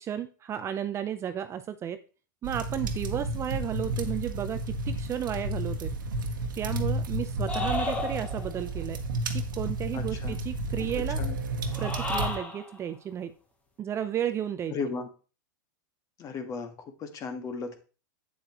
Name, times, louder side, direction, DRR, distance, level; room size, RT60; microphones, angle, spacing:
voice 1, 0.0-2.0 2.4-5.9 6.6-9.0 9.6-11.2 11.8-13.3 13.8-14.7, right 9 dB, 25° right, 10 dB, 0.6 m, -33 dB
sound 1, 2.4-12.4, right 2 dB, 85° right, 1.3 m, -32 dB
sound 2, 7.5-8.6 11.7-12.7, left 2 dB, 15° left, 1.4 m, -32 dB
voice 2, 9.9-10.4 10.9-11.4 14.7-15.1 16.2-17.8, left 4 dB, 30° left, 7 dB, 1.6 m, -36 dB
8.6 x 7.7 x 3.0 m, 0.35 s
hypercardioid pair, 120°, 10 cm